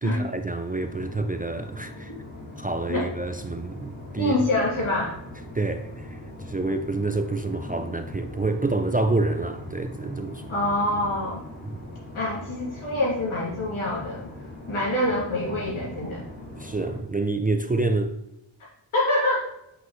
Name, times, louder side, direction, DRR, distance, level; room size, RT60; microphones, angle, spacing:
voice 1, 0.0-2.1 2.6-4.3 5.5-6.2 6.5-10.5 11.6-11.9 16.6-18.1, right 2 dB, 20° right, 0.4 m, -27 dB
sound 1, 0.7-17.0, left 1 dB, 20° left, 2.9 m, -40 dB
voice 2, 4.2-5.2 10.5-11.4 12.1-14.3 14.7-16.2 18.9-19.5, left 1 dB, 85° left, 2.8 m, -26 dB
8.0 x 5.6 x 3.1 m
wide cardioid pair, 110°, 48 cm